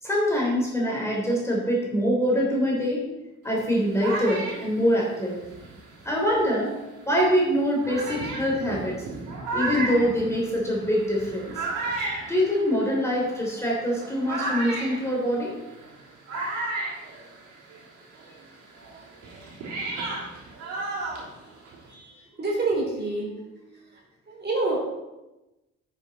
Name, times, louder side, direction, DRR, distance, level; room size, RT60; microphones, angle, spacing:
voice 1, 0.0-3.0 3.4-5.3 6.0-6.8 7.1-9.0 9.5-11.5 12.3-15.5, equal, 10° left, -3 dB, 3.4 m, -24 dB
sound 1, 3.5-6.6 7.2-7.3 7.8-17.9 18.1-21.9, right 2 dB, 90° right, 3.1 m, -34 dB
voice 2, 21.9-23.3 23.7-23.8 24.3-24.8, right 2 dB, 35° right, -3 dB, 3.5 m, -27 dB
9.8 x 7.1 x 4.3 m, 1.0 s
cardioid pair, 90°, 30 cm